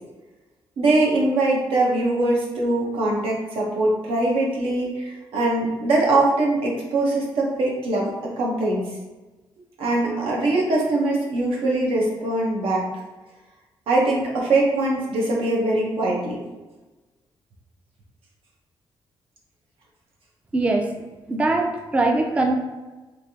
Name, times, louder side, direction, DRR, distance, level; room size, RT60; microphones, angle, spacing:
voice 1, 0.8-8.1 8.4-8.8 9.8-12.8 13.9-16.4, right 2 dB, 85° right, -3 dB, 0.8 m, -22 dB
voice 2, 20.5-21.0 21.3-22.5, right 2 dB, 15° right, 2 dB, 0.3 m, -21 dB
3.2 x 2.6 x 2.7 m, 1.2 s
cardioid pair, 115°, 9 cm